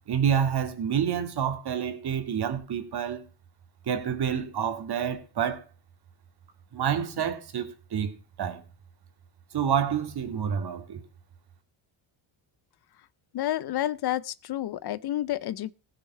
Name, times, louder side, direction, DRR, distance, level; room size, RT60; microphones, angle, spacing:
voice 1, 0.1-3.2 3.9-5.6 6.7-8.6 9.5-11.0, right 8 dB, 50° right, 2.2 m, -28 dB
voice 2, 13.3-15.7, left 13 dB, 50° left, 0.6 m, -30 dB
15.5 x 6.8 x 5.5 m
cardioid pair, 95°, 50 cm